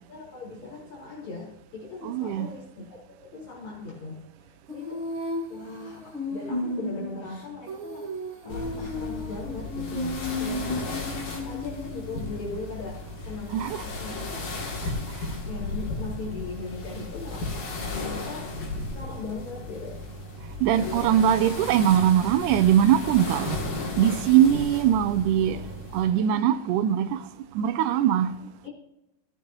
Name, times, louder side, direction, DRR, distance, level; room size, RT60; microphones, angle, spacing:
voice 1, 0.1-5.1 5.5-8.1 8.4-10.7 11.4-14.7 15.5-17.7 18.0-18.5 18.9-20.0 20.3-20.4 20.7-21.2 28.0-28.1 28.6-28.7, left 3 dB, 60° left, 5.6 m, -39 dB
voice 2, 2.0-2.5 13.5-13.8 20.6-23.6 24.0-25.7 25.9-27.3 27.6-28.3, right 10 dB, 80° right, 2.0 m, -21 dB
Female singing, 4.7-12.4, left 1 dB, 30° right, 1.5 m, -34 dB
sound 1, 8.5-26.1, left 2 dB, 85° left, 4.2 m, -35 dB
16.0 x 9.3 x 2.9 m
omnidirectional pair, 3.8 m